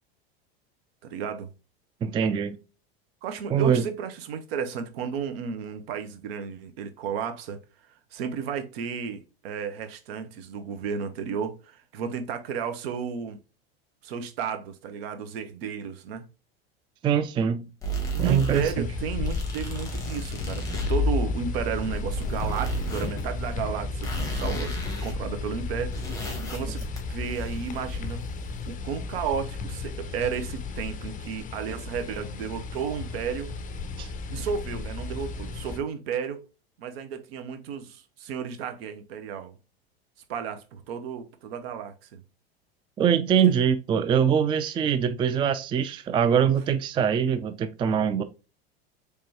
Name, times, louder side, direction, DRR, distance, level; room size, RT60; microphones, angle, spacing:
voice 1, 1.0-1.5 3.2-7.6 8.1-13.4 14.0-16.2 18.1-26.0 26.5-28.2 28.7-33.5 34.3-36.4 36.8-39.5 40.3-42.2, right 7 dB, 70° right, 0.9 m, -33 dB
voice 2, 2.0-2.6 3.5-3.8 17.0-17.7 18.2-18.9 34.0-34.1 43.0-48.2, right 8 dB, 15° right, 0.3 m, -23 dB
sound 1, 17.8-18.7 19.2-21.0 21.5-23.2 23.5-23.6 24.0-25.2 25.4-25.5 25.8-28.2, right 2 dB, 10° left, 1.8 m, -34 dB
sound 2, 18.5-35.8, left 3 dB, 25° left, 0.6 m, -33 dB
4.5 x 3.4 x 2.8 m
hypercardioid pair, 90°, 31 cm